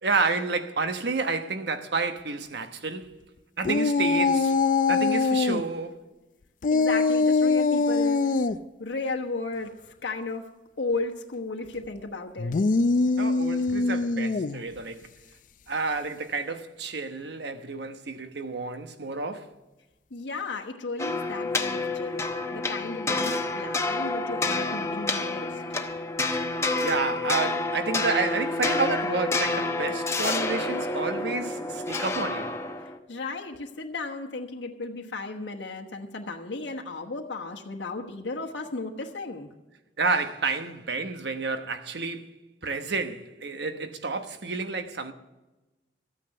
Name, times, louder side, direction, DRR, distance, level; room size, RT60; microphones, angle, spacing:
voice 1, 0.0-3.2 3.6-4.6 4.9-6.0 13.2-15.0 15.7-19.5 26.8-32.6 40.0-42.3 42.6-45.1, right 4 dB, 70° right, 1.1 m, -30 dB
sound 1, 3.6-5.6 6.6-8.6 12.4-14.6, left 4 dB, 50° left, 0.4 m, -23 dB
voice 2, 6.7-8.4 8.8-9.7 10.0-10.5 10.8-12.5 20.1-22.2 22.5-25.6 33.1-39.5, left 3 dB, 85° left, 1.2 m, -34 dB
sound 2, 21.0-33.0, left 2 dB, 15° left, 0.8 m, -29 dB
14.0 x 9.2 x 6.7 m
head